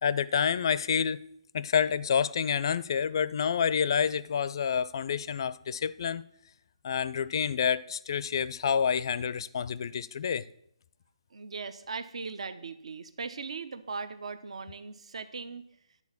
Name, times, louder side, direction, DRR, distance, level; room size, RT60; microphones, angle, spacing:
voice 1, 0.0-1.2 1.5-6.2 6.8-10.4, left 7 dB, 45° left, 0.4 m, -28 dB
voice 2, 11.3-15.7, right 4 dB, 65° right, 0.7 m, -39 dB
10.5 x 4.1 x 7.1 m
hypercardioid pair, 160°, 3 cm